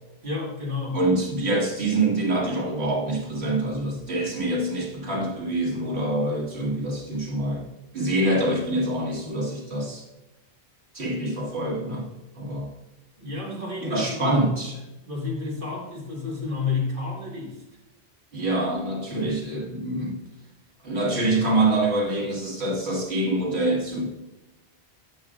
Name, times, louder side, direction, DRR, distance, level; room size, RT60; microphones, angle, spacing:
voice 1, 0.2-1.0 13.2-14.4 15.0-17.6, left 4 dB, 55° right, -5 dB, 2.0 m, -30 dB
voice 2, 0.9-7.7 7.9-10.0 10.9-12.1 12.4-12.7 13.8-14.8 18.3-20.2 20.8-24.1, right 2 dB, 90° right, -3 dB, 1.9 m, -25 dB
8.7 x 5.9 x 2.5 m, 0.99 s
omnidirectional pair, 1.1 m